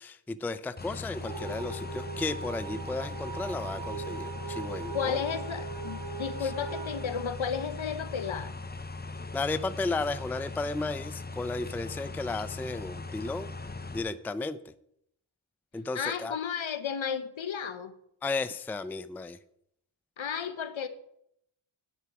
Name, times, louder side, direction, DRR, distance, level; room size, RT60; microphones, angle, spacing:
voice 1, 0.0-5.2 6.4-6.5 9.3-13.5 13.9-14.6 15.7-16.4 18.2-19.4, left 3 dB, 5° left, 13 dB, 0.4 m, -34 dB
sound 1, 0.8-14.0, left 3 dB, 20° left, 0.8 m, -40 dB
sound 2, 1.2-8.1, right 6 dB, 60° right, 1.4 m, -40 dB
voice 2, 4.9-8.5 15.9-17.9 20.2-20.9, left 7 dB, 70° left, 11 dB, 1.0 m, -33 dB
9.4 x 9.3 x 4.8 m, 0.75 s
cardioid pair, 55°, 50 cm